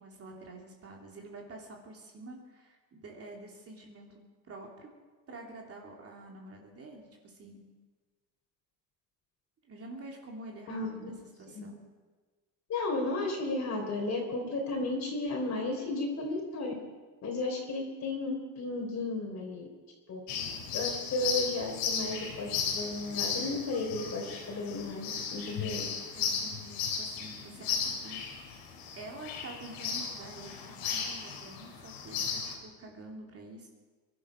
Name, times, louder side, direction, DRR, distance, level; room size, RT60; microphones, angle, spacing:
voice 1, 0.0-4.9 5.3-7.6 9.6-11.8 26.1-28.2 29.0-33.7, right 2 dB, 35° right, 0 dB, 3.0 m, -48 dB
voice 2, 10.7-11.1 11.5-11.8 12.7-16.7 17.2-19.7 20.1-20.2 20.7-25.9, left 2 dB, 40° left, 1 dB, 3.6 m, -34 dB
sound 1, 20.3-32.6, left 6 dB, 75° left, 3.5 m, -35 dB
22.5 x 12.0 x 5.1 m, 1.4 s
cardioid pair, 115°, 40 cm